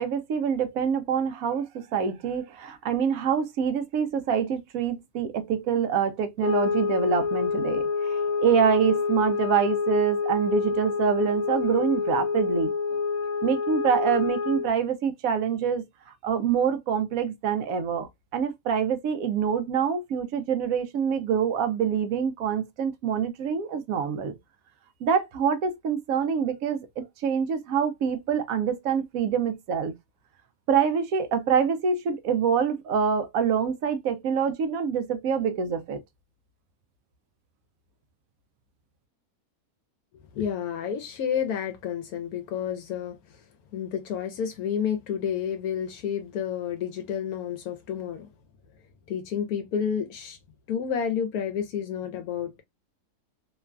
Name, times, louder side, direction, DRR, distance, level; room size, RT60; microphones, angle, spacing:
voice 1, 0.0-12.7 13.4-24.4 25.0-29.9 30.7-36.0, right 7 dB, 70° right, 0.9 m, -26 dB
sound 1, 6.4-14.8, left 5 dB, 45° left, 0.5 m, -27 dB
voice 2, 40.3-43.2 43.7-48.3 49.1-50.4 50.7-52.6, left 8 dB, 75° left, 1.0 m, -30 dB
3.0 x 2.2 x 2.3 m
omnidirectional pair, 1.6 m